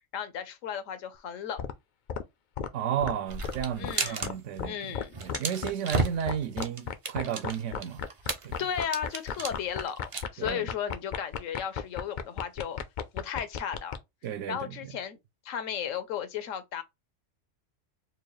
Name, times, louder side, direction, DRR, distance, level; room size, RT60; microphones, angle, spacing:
voice 1, 0.0-1.6 3.8-5.2 8.6-12.8 13.1-14.0 14.5-15.2 15.4-16.8, left 8 dB, 90° left, 1.1 m, -35 dB
sound 1, 1.6-1.7 2.1-2.2 2.6-2.7 3.0-3.1 3.4-3.5 3.8-3.9 4.2-4.3 4.6-4.7 4.9-5.4 5.6-5.7 5.9-14.0, left 8 dB, 65° left, 0.4 m, -33 dB
voice 2, 2.7-8.0 8.4-8.5 10.4-10.7 14.2-14.8, right 9 dB, 75° right, 0.9 m, -33 dB
sound 2, 3.3-4.3 4.6-4.7 5.0-10.2, right 4 dB, 40° right, 0.4 m, -34 dB
4.4 x 2.3 x 3.0 m
omnidirectional pair, 1.3 m